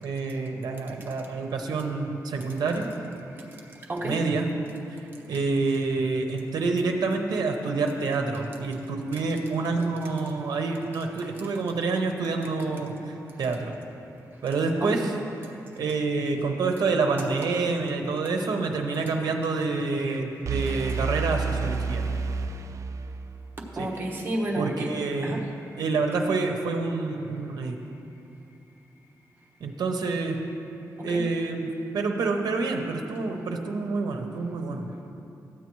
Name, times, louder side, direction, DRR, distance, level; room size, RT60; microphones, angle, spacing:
voice 1, 0.0-2.9 4.0-4.5 5.3-13.7 14.4-15.0 15.8-22.0 23.8-23.9 24.6-25.4 25.8-27.8 29.6-30.4 31.0-34.9, right 3 dB, 80° right, 3 dB, 0.7 m, -27 dB
voice 2, 3.3-4.2 14.8-15.1 23.8-24.9 25.2-25.7 31.0-31.3, right 1 dB, 30° right, -2 dB, 1.1 m, -32 dB
sound 1, 20.5-23.4, right 5 dB, 50° right, 0.3 m, -29 dB
13.0 x 8.3 x 3.1 m, 2.8 s
wide cardioid pair, 130°, 7 cm